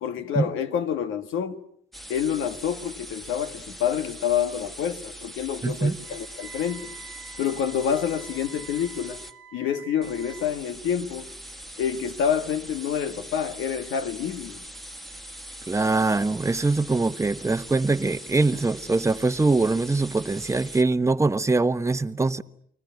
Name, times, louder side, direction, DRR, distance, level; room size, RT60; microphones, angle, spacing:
voice 1, 0.0-1.6 2.1-6.9 7.4-9.2 9.5-11.3 11.8-14.6, left 8 dB, 90° left, 1.7 m, -27 dB
sound 1, 1.9-9.3 10.0-20.8, right 1 dB, ahead, 1.5 m, -42 dB
voice 2, 5.6-6.0 15.7-22.4, right 3 dB, 15° right, 1.0 m, -23 dB
Wind instrument woodwind instrument, 6.0-10.5, right 8 dB, 90° right, 1.7 m, -47 dB
29.5 x 19.5 x 9.2 m
cardioid pair, 90°, 20 cm